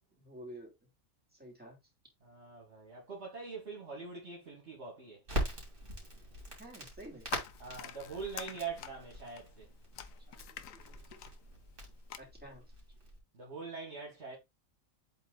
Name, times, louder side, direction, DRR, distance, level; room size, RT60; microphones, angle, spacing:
voice 1, 0.2-0.7 1.3-1.8 6.6-7.3 10.3-11.3 12.2-12.7, right 1 dB, 5° right, 2.9 m, -51 dB
voice 2, 2.2-5.2 7.6-9.7 13.3-14.4, right 5 dB, 55° right, 2.0 m, -43 dB
Crackle, 5.3-13.2, equal, 40° right, 2.8 m, -42 dB
sound 1, 7.2-12.2, left 9 dB, 75° left, 1.1 m, -48 dB
7.8 x 3.4 x 3.9 m
omnidirectional pair, 1.4 m